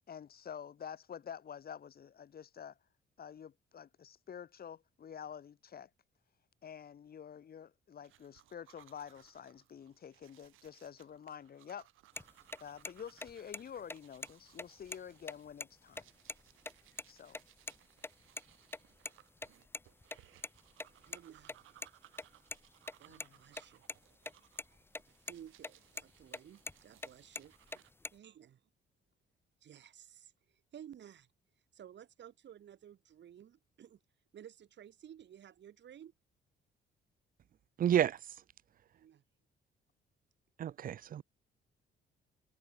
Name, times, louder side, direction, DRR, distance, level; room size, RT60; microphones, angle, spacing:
voice 1, 0.1-2.8 3.2-5.9 6.6-11.9 12.6-16.1 17.1-17.4 23.1-23.4, left 8 dB, 50° left, 1.7 m, -48 dB
sound 1, 8.0-27.9, right 15 dB, 90° right, 6.4 m, -65 dB
sound 2, 12.2-12.3 12.5-12.6 12.8-12.9 13.2-13.6 13.9-14.0 14.2-14.3 14.6-15.7 15.9-16.0 16.3-16.4 16.6-17.0 17.3-17.8 18.0-19.1 19.4-21.9 22.2-23.9 24.2-24.3 24.6-25.0 25.3-25.7 26.0-27.1 27.3-28.1, left 2 dB, 10° left, 0.6 m, -42 dB
voice 2, 21.0-21.7 23.0-23.8 25.3-27.8 28.1-28.6 29.6-31.3 31.7-34.0 34.3-36.1 38.9-39.2, right 10 dB, 65° right, 5.6 m, -55 dB
voice 3, 37.8-38.2 40.6-41.2, right 10 dB, 45° right, 0.5 m, -30 dB
cardioid pair, 90°, 20 cm